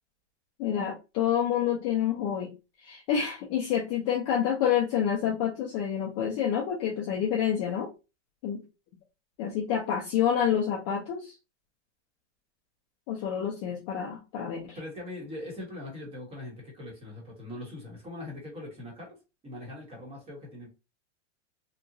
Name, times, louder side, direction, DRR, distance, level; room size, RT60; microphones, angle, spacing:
voice 1, 0.6-2.5 2.8-7.9 8.4-8.6 9.4-11.3 13.1-14.8, left 9 dB, 25° left, -2 dB, 0.4 m, -28 dB
voice 2, 14.7-19.2 19.4-20.7, left 1 dB, 15° right, -1 dB, 1.1 m, -41 dB
2.9 x 2.2 x 2.6 m, 0.28 s
supercardioid pair, 155°, 35 cm